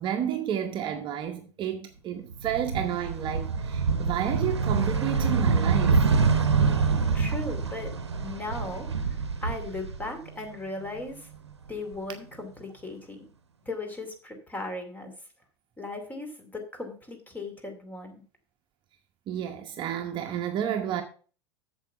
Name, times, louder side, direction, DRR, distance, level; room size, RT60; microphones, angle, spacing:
voice 1, 0.0-6.1 19.3-21.0, right 9 dB, 35° right, 1.0 m, -31 dB
sound 1, 2.3-10.4 10.8-12.0, right 5 dB, 80° right, 0.8 m, -26 dB
voice 2, 7.1-7.9 8.2-11.3 11.7-13.2 13.7-15.1 15.8-18.2, left 2 dB, 10° left, 2.5 m, -37 dB
8.1 x 7.1 x 5.6 m
figure-of-eight pair, 85°, 14 cm